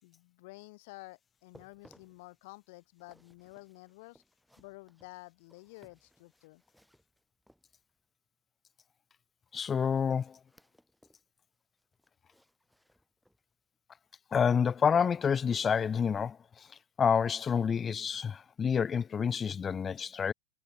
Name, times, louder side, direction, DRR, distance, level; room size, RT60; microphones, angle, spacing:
voice 1, 0.0-4.2 4.6-6.6, left 24 dB, 65° left, 5.1 m, -51 dB
sound 1, 1.3-8.1 9.5-11.3 11.6-13.5 14.0-14.1 14.7-14.8, equal, ahead, 6.9 m, -65 dB
voice 2, 9.5-10.4 14.3-16.4 17.0-20.3, left 7 dB, 25° left, 0.4 m, -28 dB
hypercardioid pair, 95°, 0 cm